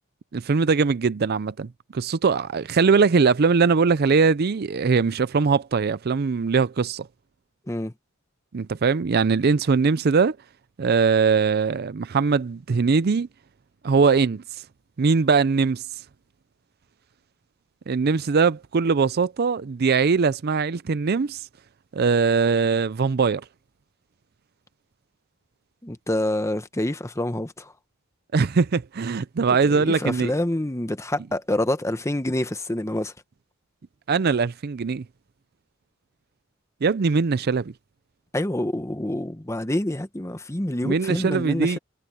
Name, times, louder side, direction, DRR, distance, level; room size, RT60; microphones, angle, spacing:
voice 1, 0.3-7.1 8.5-10.4 10.8-13.3 13.8-14.4 15.0-15.8 17.9-21.5 21.9-23.4 28.3-30.3 34.1-35.0 36.8-37.7 40.8-41.8, right 5 dB, 50° right, 0.5 m, -21 dB
voice 2, 25.8-27.7 29.6-33.1 38.3-41.8, left 1 dB, 15° left, 1.0 m, -27 dB
head